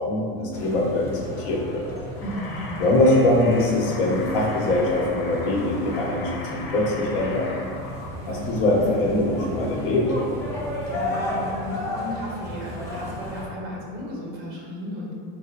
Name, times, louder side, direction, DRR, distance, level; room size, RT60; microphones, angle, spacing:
voice 1, 0.0-1.8 2.8-7.5 8.3-10.1, left 1 dB, 65° left, -2 dB, 1.0 m, -22 dB
sound 1, 0.5-13.5, left 1 dB, 10° left, 0.4 m, -34 dB
sound 2, 2.2-8.1, left 2 dB, 90° left, 1.0 m, -38 dB
voice 2, 2.2-2.7 8.2-8.5 10.5-15.1, equal, 30° right, -3 dB, 1.0 m, -35 dB
4.8 x 2.1 x 4.5 m, 2.2 s
supercardioid pair, 170°, 29 cm